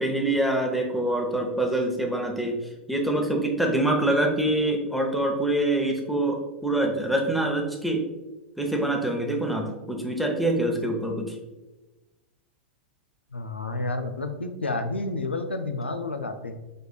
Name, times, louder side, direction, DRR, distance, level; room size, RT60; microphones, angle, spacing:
voice 1, 0.0-2.6 2.9-8.0 8.6-11.4, right 1 dB, ahead, 1 dB, 0.7 m, -25 dB
voice 2, 13.3-16.6, left 2 dB, 90° left, 7 dB, 0.4 m, -30 dB
5.1 x 3.4 x 2.2 m, 1.1 s
figure-of-eight pair, 95°, 6 cm